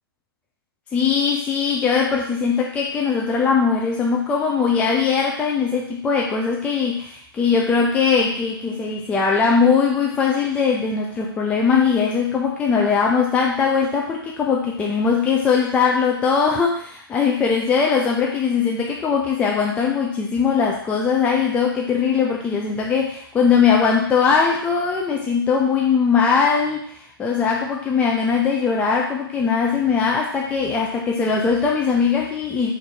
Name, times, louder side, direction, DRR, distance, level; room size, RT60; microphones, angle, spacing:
voice 1, 0.9-32.7, left 5 dB, 10° left, -1 dB, 0.4 m, -20 dB
4.6 x 2.6 x 4.3 m, 0.63 s
hypercardioid pair, 130°, 13 cm